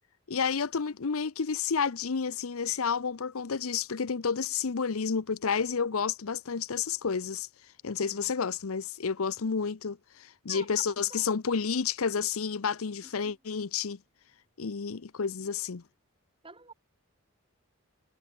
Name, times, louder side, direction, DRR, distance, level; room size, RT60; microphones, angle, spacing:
voice 1, 0.3-7.5 7.8-14.0 14.6-15.8, left 6 dB, 80° left, 0.7 m, -30 dB
voice 2, 8.0-8.3 10.5-11.3 13.2-13.4 16.4-16.7, right 4 dB, 25° right, 5.6 m, -49 dB
head